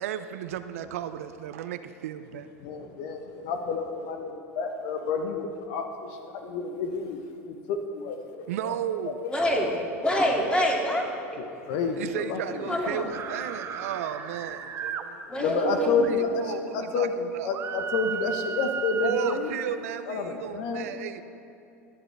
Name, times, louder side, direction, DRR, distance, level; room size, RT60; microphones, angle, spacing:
voice 1, 0.0-2.5 8.5-9.2 12.0-15.2 15.6-17.1 17.3-17.5 19.0-21.2, right 10 dB, 70° right, 11 dB, 0.5 m, -33 dB
voice 2, 2.6-7.2 7.4-8.8 9.0-9.7 11.4-12.8 15.4-17.1 17.4-19.5 20.0-20.9, left 5 dB, 60° left, 5 dB, 1.0 m, -30 dB
voice 3, 9.3-9.7 10.0-11.0 12.7-13.1 15.3-16.0, equal, 10° left, -2 dB, 2.5 m, -26 dB
sound 1, 13.1-15.0 17.5-19.4, right 7 dB, 35° right, 0.8 m, -34 dB
17.5 x 8.7 x 3.4 m, 2.7 s
hypercardioid pair, 80°, 8 cm